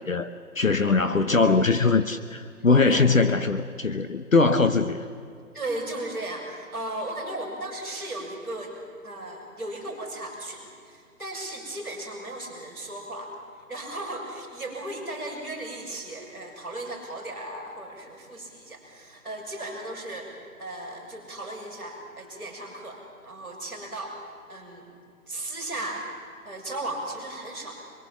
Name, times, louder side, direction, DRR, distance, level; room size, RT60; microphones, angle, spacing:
voice 1, 0.0-5.0, left 4 dB, 55° left, 9 dB, 1.1 m, -22 dB
voice 2, 0.9-1.3 2.8-3.1 5.5-8.7 9.0-13.3 13.7-20.3 20.6-24.2 24.5-24.8 25.3-26.1 26.4-27.8, right 1 dB, ahead, -17 dB, 3.5 m, -36 dB
25.5 x 23.0 x 7.4 m, 2.3 s
figure-of-eight pair, 180°, 47 cm